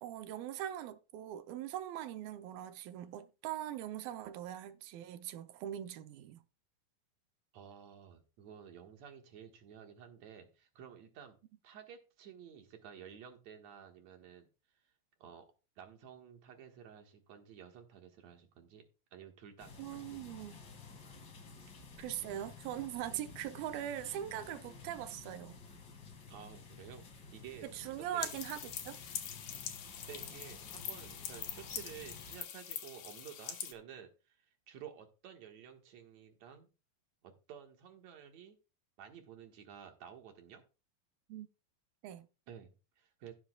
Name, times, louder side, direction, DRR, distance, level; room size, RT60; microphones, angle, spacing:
voice 1, 0.0-6.4 19.8-20.6 22.0-25.6 27.7-29.0 41.3-41.5 42.0-42.3, right 11 dB, 90° right, 2.6 m, -41 dB
voice 2, 7.5-11.4 11.6-14.5 15.2-15.5 15.8-18.9 19.1-20.2 21.9-22.0 26.3-27.7 28.0-28.3 30.1-36.7 37.2-38.6 39.0-40.6 42.5-43.3, right 8 dB, 60° right, 2.4 m, -52 dB
sound 1, 19.6-32.4, left 4 dB, 40° left, 1.8 m, -53 dB
sound 2, 28.2-33.7, left 9 dB, 65° left, 2.5 m, -43 dB
17.5 x 7.6 x 2.2 m
omnidirectional pair, 4.1 m